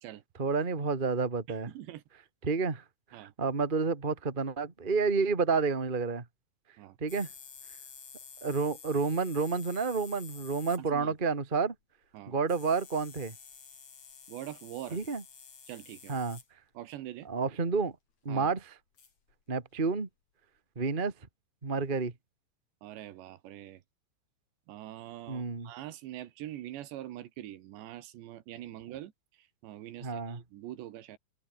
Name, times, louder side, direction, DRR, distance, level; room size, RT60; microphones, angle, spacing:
voice 1, 0.4-1.7 2.4-2.8 3.1-6.2 7.0-7.3 8.4-11.7 12.3-13.3 14.9-15.2 16.1-16.4 17.2-17.9 18.2-18.7 19.5-20.1 20.7-21.1 21.6-22.1 25.3-25.7 30.0-30.4, right 4 dB, 45° right, 0.6 m, -30 dB
sound 1, 7.1-10.8 11.2-11.3 12.5-16.5 17.7-17.9 19.0-19.3, left 6 dB, 40° left, 4.3 m, -50 dB
voice 2, 14.3-15.0 15.7-16.2 16.8-17.3 18.3-18.5 22.8-23.8 24.7-29.1 29.6-31.2, right 13 dB, 70° right, 3.6 m, -43 dB
omnidirectional pair, 5.4 m